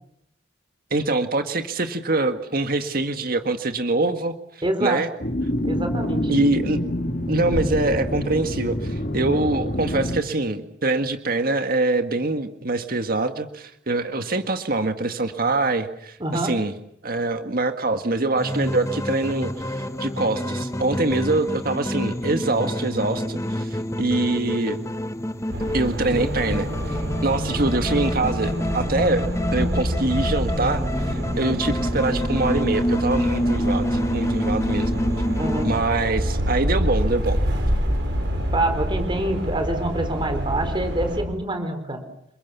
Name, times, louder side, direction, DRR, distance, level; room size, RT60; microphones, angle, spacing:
voice 1, 0.9-4.3 4.8-5.1 6.3-6.8 7.3-16.7 17.0-24.8 25.7-34.9 35.6-37.4, right 2 dB, 50° right, 7 dB, 1.8 m, -24 dB
voice 2, 4.6-5.0 5.6-6.3 16.2-16.6 35.4-35.7 38.5-42.0, right 1 dB, 25° right, 7 dB, 4.3 m, -26 dB
sound 1, 5.2-10.2, equal, 50° left, 3.3 m, -26 dB
sound 2, 18.4-35.8, equal, 15° left, 1.0 m, -27 dB
sound 3, 25.5-41.2, equal, 70° right, 7.0 m, -27 dB
29.0 x 22.0 x 7.1 m, 0.75 s
head